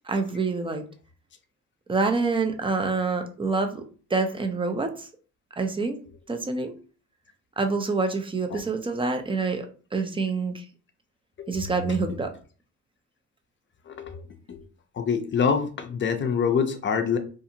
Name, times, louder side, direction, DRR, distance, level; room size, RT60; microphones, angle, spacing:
voice 1, 0.1-0.8 1.9-3.8 4.1-5.1 5.6-6.0 6.3-6.7 7.6-9.7 9.9-10.6 11.5-12.3, right 3 dB, 15° right, 6 dB, 0.5 m, -26 dB
voice 2, 13.9-14.2 14.5-14.6 15.0-17.2, left 6 dB, 40° left, 8 dB, 0.5 m, -26 dB
2.5 x 2.4 x 2.8 m, 0.39 s
cardioid pair, 90°, 30 cm